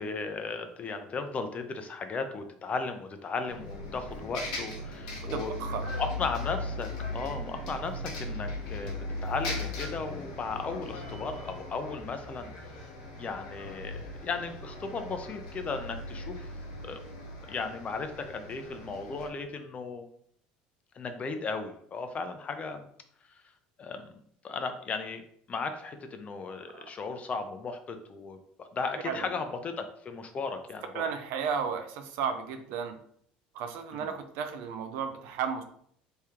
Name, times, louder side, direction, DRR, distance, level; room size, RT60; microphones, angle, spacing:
voice 1, 0.0-5.5 5.9-12.8 13.2-16.6 16.8-17.0 17.4-20.1 20.9-22.9 23.3-23.4 23.8-24.1 24.4-25.2 25.5-31.0 33.9-34.1, left 4 dB, 35° left, 7 dB, 0.6 m, -36 dB
Bus, 3.5-19.3, left 2 dB, 90° left, 1.0 m, -38 dB
voice 2, 5.3-5.9 26.7-26.8 29.0-29.3 30.9-32.9 33.5-35.6, right 6 dB, 70° right, 8 dB, 0.5 m, -33 dB
3.2 x 2.9 x 3.6 m, 0.65 s
supercardioid pair, 85°, 4 cm